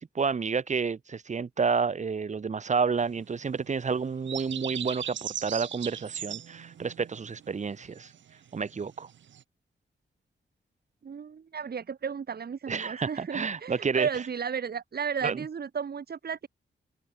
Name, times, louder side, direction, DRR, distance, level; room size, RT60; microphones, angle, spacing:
voice 1, 0.0-8.1 8.5-9.1 12.7-14.1 15.2-15.4, right 5 dB, 40° right, 0.9 m, -30 dB
sound 1, 3.0-9.4, right 9 dB, 75° right, 0.7 m, -39 dB
voice 2, 11.0-16.5, right 6 dB, 55° right, 1.5 m, -34 dB
wide cardioid pair, 120°, 19 cm